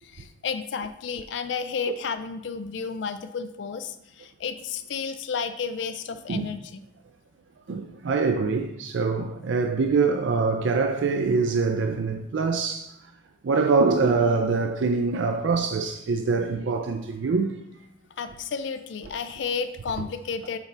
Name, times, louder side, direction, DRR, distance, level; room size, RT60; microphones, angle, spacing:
voice 1, 0.0-6.8 18.2-20.6, left 5 dB, 70° left, 0.4 m, -32 dB
voice 2, 7.7-12.9 13.4-17.6, right 4 dB, 80° right, 0.4 m, -24 dB
6.9 x 4.2 x 3.3 m
head